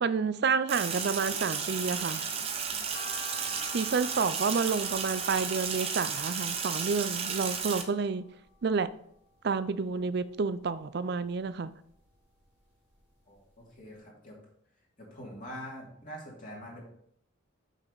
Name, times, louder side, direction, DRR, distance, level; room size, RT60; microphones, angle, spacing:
voice 1, 0.0-2.2 3.7-8.3 8.6-8.9 9.4-11.7, right 5 dB, 50° right, 0.4 m, -29 dB
Sink (filling or washing), 0.7-7.8, right 6 dB, 25° right, 0.8 m, -33 dB
sound 1, 2.9-9.2 9.6-10.7 11.1-12.5 12.9-13.0 13.5-13.6 13.8-13.9, left 3 dB, 10° left, 2.0 m, -50 dB
voice 2, 13.3-14.4 15.0-16.8, equal, 40° left, 2.4 m, -44 dB
6.5 x 6.4 x 3.9 m
head